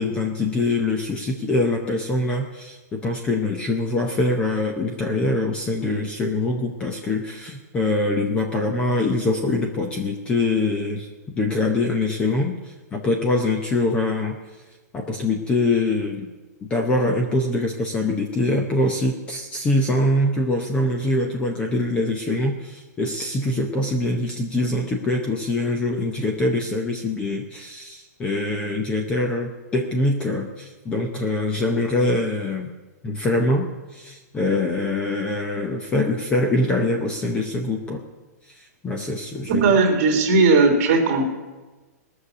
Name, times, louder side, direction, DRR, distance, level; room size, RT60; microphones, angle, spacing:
voice 1, 0.0-11.1 11.4-12.5 12.9-14.4 14.9-16.3 16.6-32.7 33.0-38.0 38.8-39.6, left 2 dB, 10° left, 3 dB, 0.7 m, -24 dB
voice 2, 39.5-41.3, right 3 dB, 35° right, 3 dB, 2.4 m, -17 dB
19.0 x 6.6 x 8.3 m, 1.2 s
hypercardioid pair, 170°, 9 cm